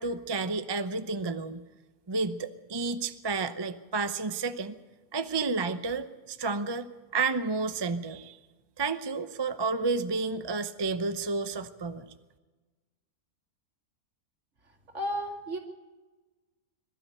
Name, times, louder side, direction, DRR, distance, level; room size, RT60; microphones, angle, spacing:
voice 1, 0.0-1.6 2.1-4.7 5.1-6.9 7.1-8.4 8.8-12.1, right 4 dB, 30° right, 10 dB, 0.5 m, -31 dB
voice 2, 14.9-15.6, equal, 50° right, 2 dB, 2.9 m, -32 dB
22.5 x 13.0 x 9.0 m, 1.2 s
omnidirectional pair, 1.6 m